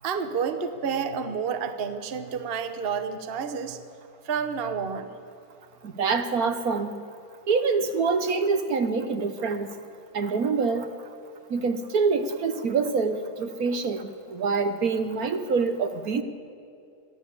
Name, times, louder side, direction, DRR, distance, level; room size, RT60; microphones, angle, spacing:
voice 1, 0.0-3.9 4.2-5.1, right 6 dB, 40° right, 9 dB, 1.1 m, -30 dB
voice 2, 5.8-6.9 7.5-9.7 10.1-10.9 11.5-16.2, right 4 dB, 60° right, 8 dB, 1.4 m, -25 dB
22.5 x 13.5 x 8.5 m, 2.6 s
omnidirectional pair, 1.9 m